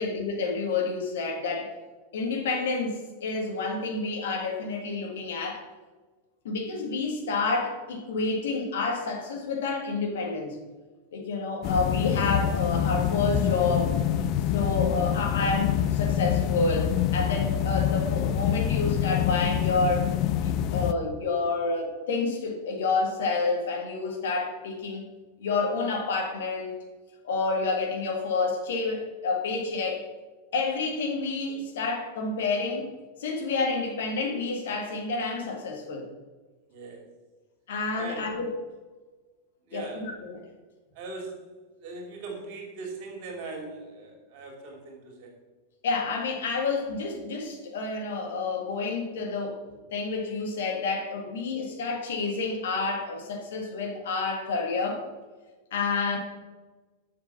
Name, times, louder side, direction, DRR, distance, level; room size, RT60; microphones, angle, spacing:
voice 1, 0.0-1.7 2.1-5.6 6.4-10.6 11.1-13.9 14.5-20.1 20.4-25.1 25.4-26.7 27.2-30.1 30.5-32.9 33.2-36.0 37.7-38.5 39.7-40.4 45.8-55.0 55.7-56.2, left 3 dB, 60° left, 1 dB, 1.8 m, -29 dB
sound 1, 11.6-20.9, left 10 dB, 40° left, 0.4 m, -26 dB
voice 2, 36.7-37.1 37.9-38.3 39.7-40.1 40.9-41.4 41.8-45.3, right 3 dB, 45° right, 0 dB, 2.8 m, -40 dB
7.3 x 6.6 x 5.6 m, 1.3 s
figure-of-eight pair, 90°, 0 cm